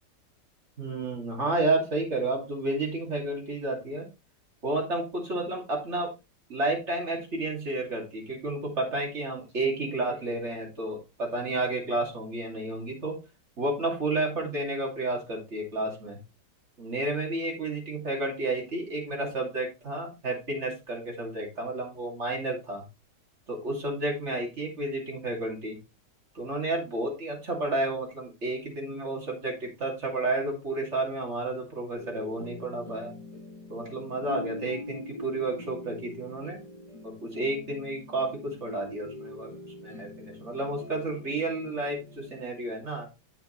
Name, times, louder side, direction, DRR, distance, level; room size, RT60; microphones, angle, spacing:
voice 1, 0.8-4.1 4.6-6.1 6.5-13.2 13.6-16.2 16.8-22.8 23.5-25.8 26.3-33.1 33.7-36.6 37.0-39.5 39.8-43.1, right 2 dB, 40° right, 0 dB, 2.9 m, -31 dB
sound 1, 31.9-42.4, left 1 dB, 25° left, 5.9 m, -43 dB
8.2 x 7.2 x 3.2 m, 0.27 s
omnidirectional pair, 1.9 m